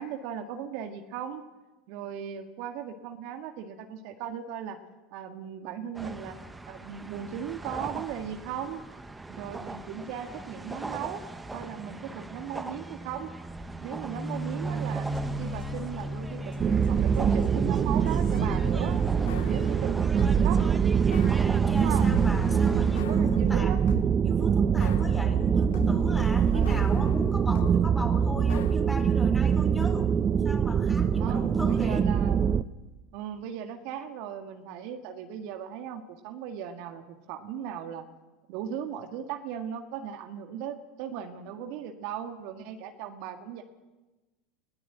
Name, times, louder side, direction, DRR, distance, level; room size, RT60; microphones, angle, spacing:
voice 1, 0.0-1.5 1.9-4.8 5.1-6.4 6.7-8.8 9.3-11.2 11.5-13.3 13.8-15.1 15.4-19.0 19.5-20.6 21.7-22.1 23.1-23.8 26.5-26.8 31.2-32.4 33.1-38.1 38.5-43.6, right 9 dB, 60° right, 6 dB, 1.7 m, -37 dB
sound 1, 5.9-23.0, right 2 dB, 10° right, 1.4 m, -38 dB
sound 2, 15.1-16.9 17.1-20.5 21.1-24.3 24.8-27.8 28.5-28.8, left 13 dB, 70° left, 1.0 m, -41 dB
sound 3, 16.6-32.6, right 7 dB, 35° right, 0.7 m, -24 dB
voice 2, 21.5-23.8 24.2-30.2 30.4-32.1, left 1 dB, 5° left, 5 dB, 4.1 m, -38 dB
20.5 x 17.0 x 8.9 m, 1.1 s
hypercardioid pair, 80°, 0 cm